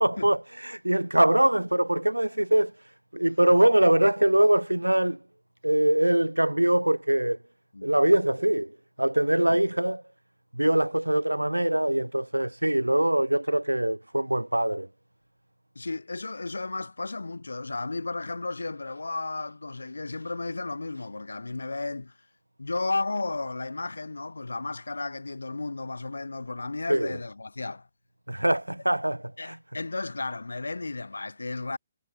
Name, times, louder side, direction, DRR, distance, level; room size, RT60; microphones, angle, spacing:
voice 1, 0.0-2.7 3.1-5.2 5.6-7.4 7.8-10.0 10.5-14.9 26.9-27.2 28.3-29.6, right 1 dB, 90° right, 0.7 m, -23 dB
voice 2, 15.7-22.1 22.6-27.9 29.4-31.8, left 3 dB, 75° left, 4.3 m, -33 dB
figure-of-eight pair, 135°, 0 cm